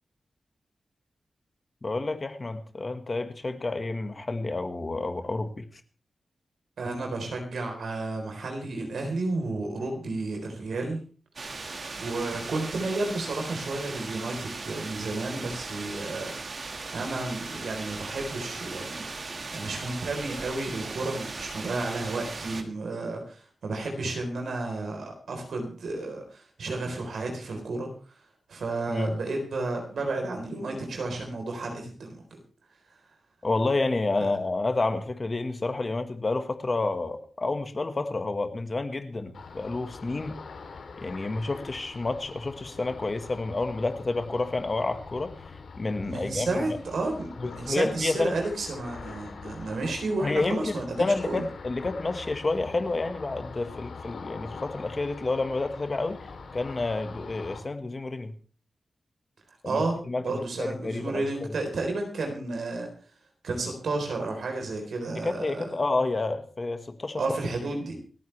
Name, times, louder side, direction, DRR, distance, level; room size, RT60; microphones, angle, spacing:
voice 1, 1.8-5.6 28.9-29.2 33.4-40.3 41.0-45.3 45.8-46.6 47.4-48.3 50.2-56.2 56.5-58.3 59.6-60.2 60.6-61.3 65.2-67.2, left 3 dB, 30° left, 8 dB, 1.5 m, -29 dB
voice 2, 6.8-11.0 12.0-16.5 16.9-27.9 28.5-32.4 34.2-34.3 46.0-51.4 59.6-62.9 63.4-65.7 67.2-67.9, right 2 dB, 90° right, 2 dB, 3.9 m, -32 dB
sound 1, 11.4-22.6, right 3 dB, 45° right, 1.9 m, -38 dB
Ocean, 39.3-57.6, left 4 dB, 85° left, 3.2 m, -43 dB
28.5 x 9.6 x 3.3 m, 0.39 s
wide cardioid pair, 160°, 0 cm